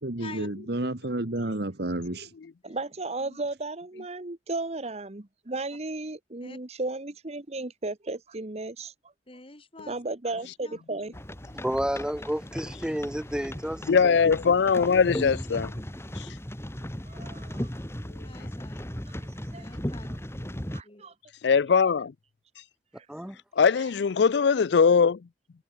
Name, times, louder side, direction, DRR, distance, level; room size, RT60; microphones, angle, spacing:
voice 1, 0.0-2.3, right 1 dB, 65° right, 1.7 m, -31 dB
voice 2, 2.6-8.9 9.9-11.1 17.1-17.7 19.5-19.6 20.7-21.1 23.0-23.1, right 2 dB, 35° right, 1.2 m, -34 dB
voice 3, 9.3-9.9 10.6-10.8 18.2-18.8 19.2-20.2 20.8-21.1, left 3 dB, 30° left, 2.7 m, -47 dB
sound 1, 11.1-20.8, equal, 15° left, 2.4 m, -37 dB
voice 4, 11.5-14.2 23.1-23.4, equal, 5° right, 0.8 m, -31 dB
voice 5, 13.9-15.7 21.4-22.1 23.6-25.2, left 6 dB, 75° left, 0.4 m, -21 dB
head